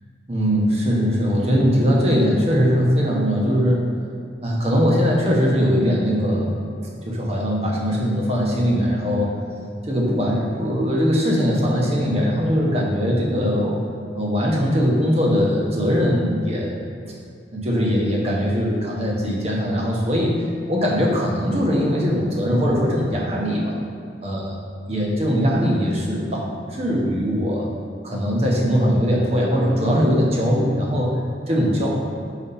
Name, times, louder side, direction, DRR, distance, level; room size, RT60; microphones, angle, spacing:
voice 1, 0.3-3.9 4.4-6.6 7.1-9.4 9.8-13.8 14.1-16.7 17.5-20.3 20.7-23.7 24.2-24.4 24.9-27.7 28.0-31.2 31.5-31.9, equal, 35° right, -2 dB, 0.9 m, -20 dB
4.3 x 4.2 x 5.5 m, 2.4 s
head